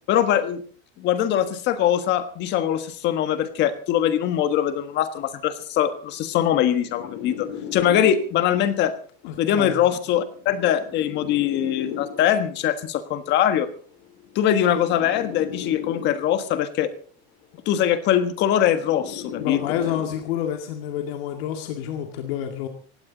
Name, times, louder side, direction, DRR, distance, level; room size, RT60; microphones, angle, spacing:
voice 1, 0.1-0.6 1.0-8.9 9.4-13.7 14.3-16.9 17.6-19.6, left 10 dB, 35° left, 10 dB, 1.5 m, -22 dB
sound 1, 5.4-8.5 9.5-12.5 13.5-16.5 17.5-20.5 21.5-21.9, left 8 dB, 90° left, 5.3 m, -37 dB
voice 2, 9.2-9.8 19.4-22.7, left 10 dB, 70° left, 4 dB, 2.2 m, -28 dB
18.5 x 16.0 x 4.0 m, 0.43 s
cardioid pair, 175°, 31 cm